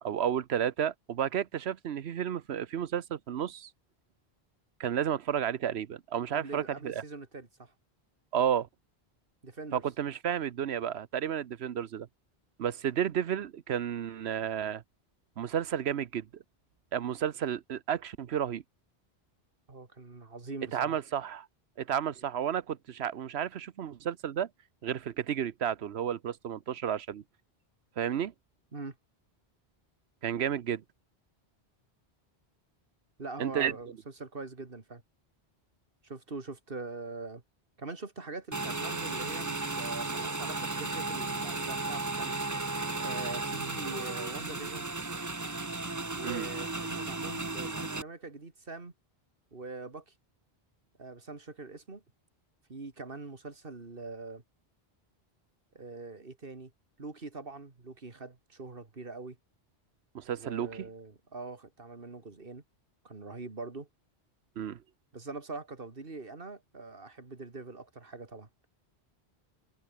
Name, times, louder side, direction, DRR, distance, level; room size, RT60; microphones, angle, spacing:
voice 1, 0.0-3.7 4.8-7.0 8.3-8.7 9.7-12.1 12.6-14.8 15.4-16.3 16.9-18.6 20.7-21.5 21.8-24.5 24.8-27.2 28.0-28.3 30.2-30.8 33.4-33.7 46.2-46.5 60.1-60.9 64.6-64.8, right 9 dB, 80° right, 1.1 m, -32 dB
voice 2, 6.3-7.7 9.4-9.8 19.7-21.0 28.7-29.0 33.2-35.0 36.0-37.4 37.8-42.4 42.9-44.9 46.2-48.9 49.5-50.1 51.0-52.0 52.7-54.4 55.7-56.7 57.0-59.4 60.4-62.6 63.0-63.9 65.1-68.5, right 3 dB, 60° right, 2.6 m, -43 dB
Motorcycle / Engine, 38.5-48.0, right 3 dB, 20° right, 0.8 m, -35 dB
omnidirectional pair, 1.1 m